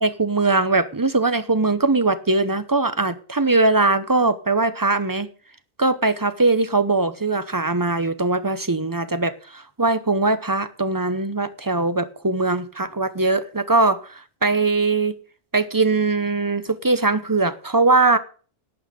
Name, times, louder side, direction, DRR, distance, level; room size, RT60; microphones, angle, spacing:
voice 1, 0.0-5.3 5.8-14.0 14.4-15.2 15.5-18.2, right 3 dB, 20° right, 0.8 m, -21 dB
11.5 x 8.6 x 5.0 m
omnidirectional pair, 1.2 m